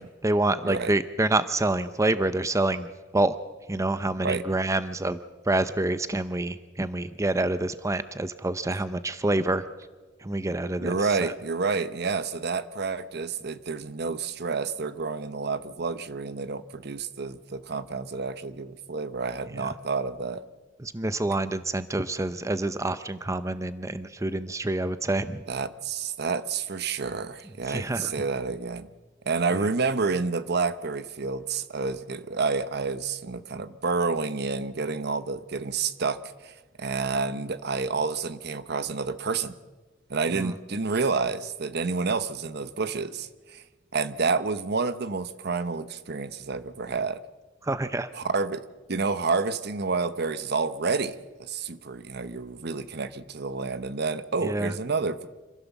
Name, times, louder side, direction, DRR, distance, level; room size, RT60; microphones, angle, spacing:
voice 1, 0.2-3.4 3.7-5.2 5.4-9.6 10.2-11.3 20.8-25.4 27.7-28.1 29.5-29.6 40.3-40.5 47.6-48.1 54.4-54.7, right 2 dB, 15° right, 12 dB, 0.6 m, -27 dB
voice 2, 10.8-20.4 25.5-28.9 29.2-39.5 40.1-43.6 43.9-47.2 48.1-55.3, right 4 dB, 60° right, 13 dB, 0.9 m, -29 dB
26.5 x 15.5 x 7.2 m, 1.3 s
head